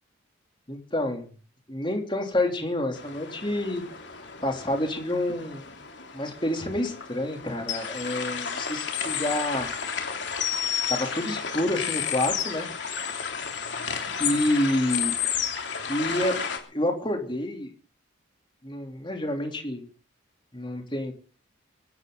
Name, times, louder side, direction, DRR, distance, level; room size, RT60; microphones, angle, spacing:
voice 1, 0.7-1.3 1.7-3.8 4.4-5.6 6.1-9.7 10.9-12.7 14.2-15.1 15.9-16.4 16.7-17.7 18.6-19.8 20.5-21.1, left 1 dB, 25° left, 4 dB, 3.2 m, -28 dB
sound 1, 2.9-16.6, left 7 dB, 60° left, 3.1 m, -32 dB
24.0 x 12.0 x 3.9 m, 0.37 s
head